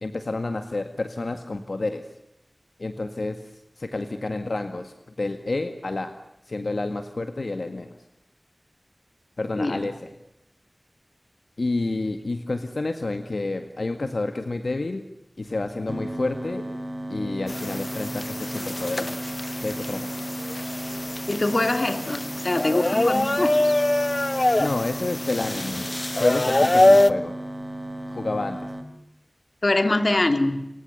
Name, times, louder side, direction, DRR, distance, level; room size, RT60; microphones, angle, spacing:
voice 1, 0.0-2.1 2.8-6.1 6.4-8.0 9.4-10.1 11.6-15.0 15.4-16.6 17.1-19.3 19.6-20.1 24.6-25.9 26.2-27.4 28.1-28.7, left 2 dB, 75° left, 7 dB, 1.9 m, -29 dB
sound 1, 15.9-28.8, right 1 dB, 15° right, 4.0 m, -35 dB
sound 2, 17.5-27.1, left 1 dB, 40° left, 1.1 m, -24 dB
voice 2, 21.3-23.6 29.6-30.7, left 2 dB, 55° left, 8 dB, 2.9 m, -23 dB
29.5 x 26.5 x 7.0 m, 0.84 s
wide cardioid pair, 60°, 0 cm